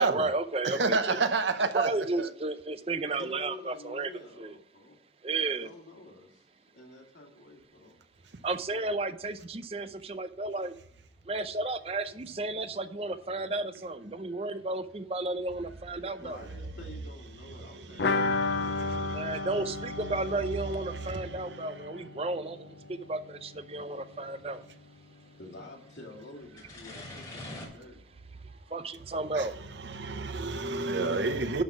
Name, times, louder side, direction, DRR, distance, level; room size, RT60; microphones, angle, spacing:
voice 1, 0.0-1.2 1.7-4.6 5.2-5.7 8.4-10.8 11.3-16.5 19.1-24.7 28.7-29.5, right 2 dB, 35° right, 0.5 m, -33 dB
voice 2, 0.6-1.9 2.2-2.3 17.4-19.4 21.0-21.2 21.5-21.7 29.3-29.5 29.8-31.6, right 3 dB, 90° right, 0.9 m, -30 dB
voice 3, 3.2-5.0 5.6-6.3 6.7-7.9 16.2-19.3 23.7-23.8 25.4-28.0, left 2 dB, 85° left, 2.4 m, -49 dB
sound 1, 10.8-27.7, left 1 dB, 25° left, 2.9 m, -54 dB
sound 2, 18.0-23.6 23.8-23.9 24.2-24.3, left 3 dB, 70° left, 0.6 m, -33 dB
11.5 x 4.1 x 6.0 m
head